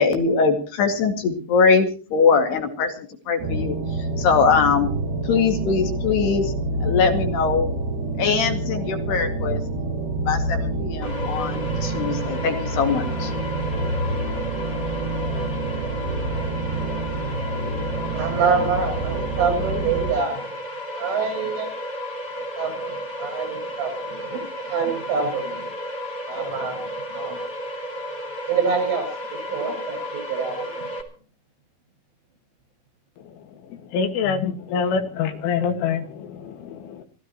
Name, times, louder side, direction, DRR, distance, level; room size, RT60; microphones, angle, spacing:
voice 1, 0.0-3.8 4.2-4.9 5.3-6.5 6.8-7.7 8.2-9.6 10.2-13.3, left 5 dB, 65° left, 5 dB, 3.9 m, -21 dB
sound 1, 3.4-20.1, right 2 dB, 55° right, 7.4 m, -27 dB
sound 2, 11.0-31.0, equal, 25° left, 2.6 m, -33 dB
voice 2, 18.0-20.5 21.0-21.7 22.6-25.7 26.3-27.4 28.5-30.9, right 5 dB, 90° right, 4 dB, 9.4 m, -26 dB
voice 3, 33.7-36.7, left 6 dB, 85° left, 7 dB, 4.3 m, -25 dB
26.5 x 16.0 x 3.0 m, 0.40 s
omnidirectional pair, 5.5 m